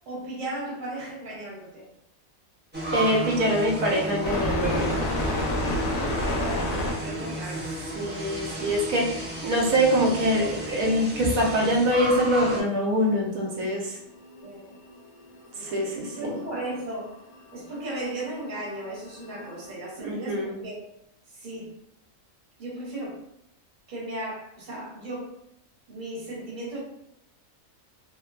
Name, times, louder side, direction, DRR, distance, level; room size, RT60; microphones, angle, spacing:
voice 1, 0.1-1.8 6.2-7.7 14.4-14.7 15.5-17.2 17.5-20.7 21.3-21.7 22.6-23.2 23.9-25.3 25.9-26.8, right 1 dB, 40° right, -4 dB, 1.0 m, -36 dB
sound 1, 2.7-12.6, right 1 dB, 15° right, 0.4 m, -33 dB
voice 2, 2.9-4.9 7.2-7.3 7.9-14.0 15.6-16.4 20.0-20.6, equal, 90° right, -1 dB, 1.1 m, -24 dB
sound 2, 4.2-6.9 10.5-10.6 10.8-10.9 11.0-12.3 12.6-19.7, left 1 dB, 80° left, 1.0 m, -30 dB
2.9 x 2.1 x 2.4 m, 0.76 s
omnidirectional pair, 1.4 m